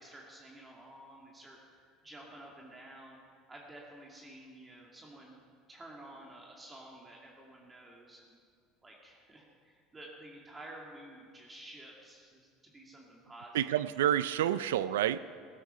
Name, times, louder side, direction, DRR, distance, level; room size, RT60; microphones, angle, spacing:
voice 1, 0.0-1.6 2.0-3.2 3.5-5.3 5.7-8.4 8.8-13.9, right 1 dB, 20° right, -2 dB, 2.3 m, -51 dB
voice 2, 13.5-15.2, right 11 dB, 90° right, 15 dB, 0.3 m, -29 dB
15.5 x 12.0 x 5.6 m, 2.1 s
supercardioid pair, 90°, 0 cm